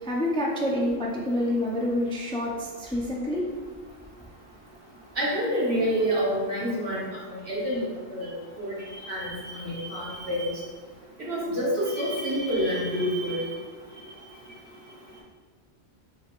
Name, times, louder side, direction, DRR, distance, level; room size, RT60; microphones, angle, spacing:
voice 1, 0.0-3.4, left 1 dB, 5° left, -3 dB, 0.4 m, -27 dB
voice 2, 5.2-7.8 8.1-8.3 8.6-8.7 9.0-10.5 11.3-13.5, equal, 80° right, -6 dB, 1.5 m, -27 dB
5.6 x 3.4 x 2.5 m, 1.4 s
omnidirectional pair, 1.1 m